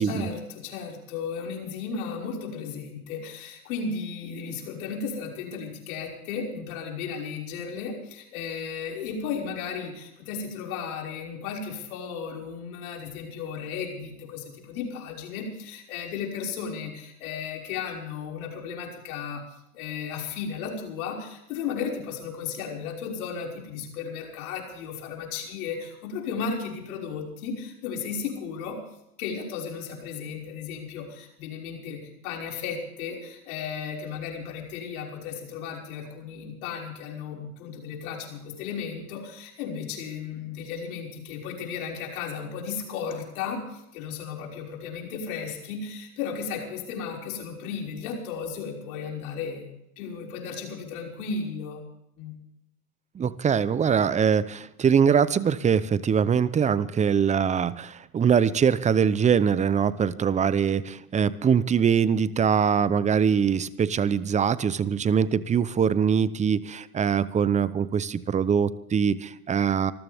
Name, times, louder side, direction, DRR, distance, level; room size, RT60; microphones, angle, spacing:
voice 1, 0.0-19.4 19.7-28.8 29.2-49.7 50.0-51.8 52.2-52.3, left 6 dB, 65° left, 0 dB, 5.7 m, -35 dB
voice 2, 53.1-69.9, right 7 dB, 15° right, 17 dB, 0.7 m, -23 dB
26.0 x 14.0 x 3.6 m, 0.84 s
hypercardioid pair, 105°, 45 cm